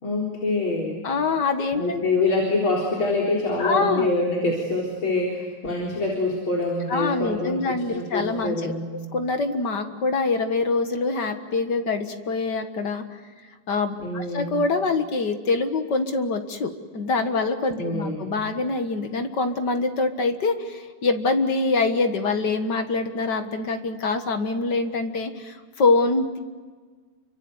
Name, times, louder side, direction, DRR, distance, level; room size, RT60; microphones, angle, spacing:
voice 1, 0.0-1.0 1.7-8.9 14.0-14.5 17.8-18.3, left 2 dB, 35° left, -1 dB, 4.5 m, -25 dB
voice 2, 1.0-2.0 3.6-4.1 6.9-8.7 9.1-13.2 13.7-26.4, left 3 dB, 50° left, 6 dB, 1.2 m, -25 dB
30.0 x 25.0 x 8.0 m, 1.5 s
omnidirectional pair, 4.1 m